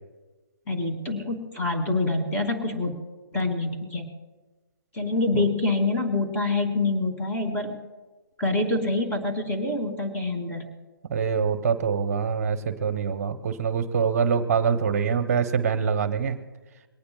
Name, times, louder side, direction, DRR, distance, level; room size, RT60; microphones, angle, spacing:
voice 1, 0.7-2.9 3.3-4.1 4.9-7.8 8.4-10.7, left 2 dB, 15° left, 3 dB, 2.7 m, -26 dB
voice 2, 11.1-16.4, right 6 dB, 40° right, 8 dB, 1.0 m, -24 dB
22.5 x 18.5 x 2.4 m, 1.3 s
figure-of-eight pair, 140°, 12 cm